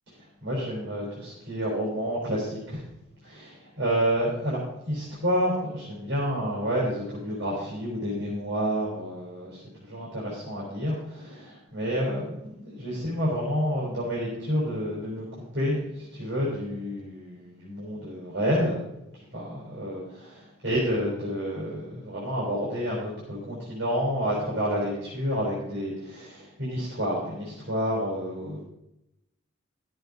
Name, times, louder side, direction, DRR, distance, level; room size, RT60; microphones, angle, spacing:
voice 1, 0.4-2.8 3.2-18.8 19.1-28.6, equal, 55° right, -6 dB, 4.4 m, -29 dB
12.5 x 8.1 x 5.3 m, 0.86 s
head